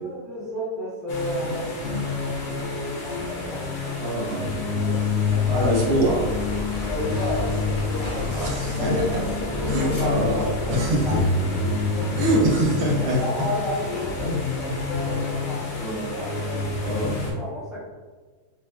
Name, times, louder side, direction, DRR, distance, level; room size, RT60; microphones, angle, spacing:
voice 1, 0.0-4.2 4.8-5.7 6.7-10.7 11.0-11.2 11.9-12.3 13.1-17.0 17.3-17.8, left 1 dB, ahead, -10 dB, 0.9 m, -33 dB
sound 1, 1.1-17.3, left 4 dB, 75° left, 1.2 m, -28 dB
voice 2, 4.0-4.4 5.5-6.2 8.4-9.2 9.7-10.4 10.7-11.2 12.2-13.2 15.1-15.2 15.8-16.1 16.8-17.2, right 1 dB, 80° right, -3 dB, 1.3 m, -24 dB
sound 2, 5.3-11.2, equal, 35° left, 0.6 m, -34 dB
3.3 x 2.5 x 2.2 m, 1.4 s
omnidirectional pair, 1.7 m